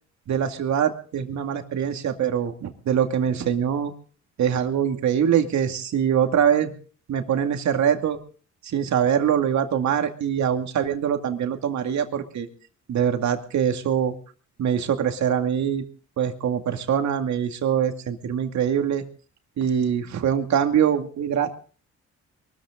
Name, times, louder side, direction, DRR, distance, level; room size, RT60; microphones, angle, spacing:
voice 1, 0.3-3.9 4.4-6.7 7.1-8.2 8.6-12.5 12.9-14.1 14.6-15.8 16.2-19.0 19.6-21.6, right 8 dB, 65° right, 6 dB, 2.3 m, -23 dB
23.0 x 14.0 x 3.8 m, 0.40 s
cardioid pair, 90°, 30 cm